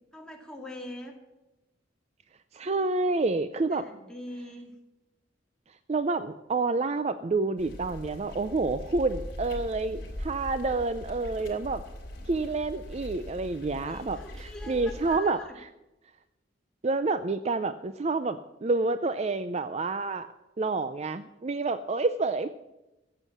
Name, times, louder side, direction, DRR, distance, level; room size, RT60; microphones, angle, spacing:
voice 1, 0.1-1.2 3.7-4.7 13.8-15.6, left 1 dB, 5° left, 0 dB, 2.2 m, -43 dB
voice 2, 2.5-3.8 5.9-11.8 12.3-15.4 16.8-20.3 20.6-22.5, right 3 dB, 35° right, 12 dB, 0.4 m, -28 dB
sound 1, 7.6-15.2, equal, 55° left, 4.7 m, -41 dB
14.5 x 8.2 x 7.3 m, 1.0 s
head